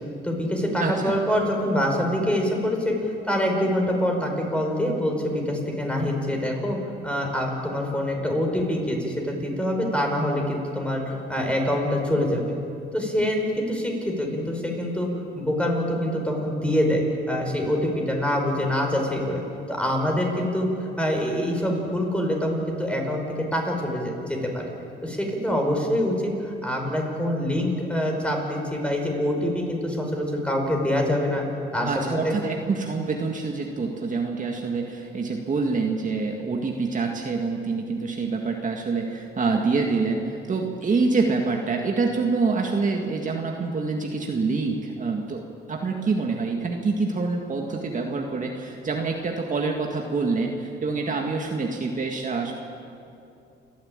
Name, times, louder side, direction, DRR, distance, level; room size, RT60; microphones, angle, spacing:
voice 1, 0.2-3.0 3.2-6.8 7.0-12.6 12.9-15.1 15.4-19.4 19.7-20.7 21.0-23.2 23.5-24.6 25.0-31.5 31.7-32.3, equal, 5° left, 1 dB, 5.2 m, -25 dB
voice 2, 0.8-1.2 31.8-45.4 45.7-52.5, right 4 dB, 40° right, 1 dB, 2.0 m, -26 dB
29.5 x 11.5 x 8.9 m, 2.8 s
cardioid pair, 90°, 20 cm